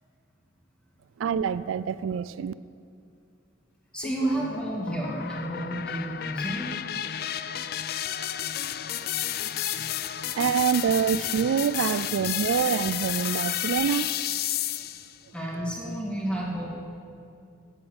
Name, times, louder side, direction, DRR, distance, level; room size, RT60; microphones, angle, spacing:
voice 1, 1.2-2.5 10.3-14.2, right 7 dB, 85° right, 16 dB, 0.3 m, -26 dB
voice 2, 3.9-6.8 9.7-9.9 15.3-16.7, right 1 dB, 5° left, -3 dB, 1.9 m, -31 dB
sound 1, 4.0-15.1, left 11 dB, 50° left, 0.4 m, -32 dB
9.7 x 7.9 x 9.0 m, 2.5 s
head